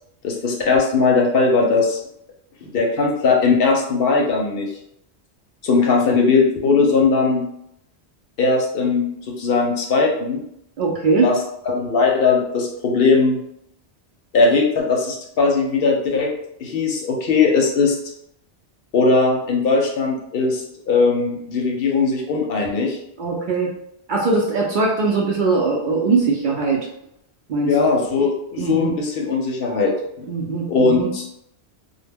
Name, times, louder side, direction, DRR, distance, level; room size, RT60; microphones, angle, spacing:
voice 1, 0.2-2.0 2.6-4.7 5.6-7.4 8.4-10.4 11.2-13.4 14.3-16.3 16.6-18.0 18.9-23.0 27.6-30.3 30.7-31.3, left 4 dB, 65° left, 0 dB, 0.7 m, -19 dB
voice 2, 10.8-11.3 23.2-23.7 24.1-26.8 27.5-27.7 28.6-28.9 30.3-31.1, right 3 dB, 60° right, -2 dB, 0.6 m, -20 dB
2.1 x 2.0 x 3.3 m, 0.76 s
omnidirectional pair, 1.1 m